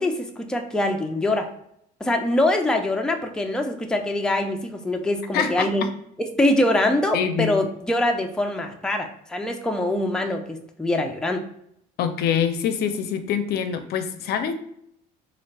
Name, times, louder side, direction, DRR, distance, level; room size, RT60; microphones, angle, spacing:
voice 1, 0.0-1.5 2.0-5.8 6.2-11.4, left 1 dB, 5° left, 4 dB, 0.4 m, -24 dB
voice 2, 5.3-5.9 7.1-7.7 12.0-14.5, left 8 dB, 70° left, 9 dB, 0.5 m, -25 dB
4.2 x 2.4 x 3.3 m, 0.72 s
cardioid pair, 110°, 17 cm